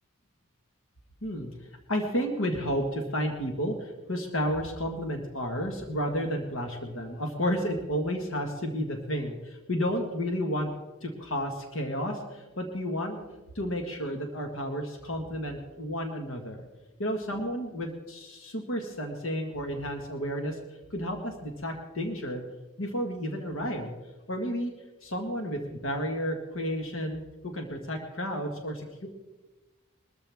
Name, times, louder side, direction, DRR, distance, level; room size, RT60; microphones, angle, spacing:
voice 1, 1.2-1.5 1.9-10.7 11.0-13.1 13.5-16.6 17.0-20.6 20.9-22.4 22.8-23.9 24.3-24.7 25.0-29.1, equal, 65° left, 3 dB, 1.6 m, -32 dB
21.5 x 13.5 x 3.5 m, 1.2 s
head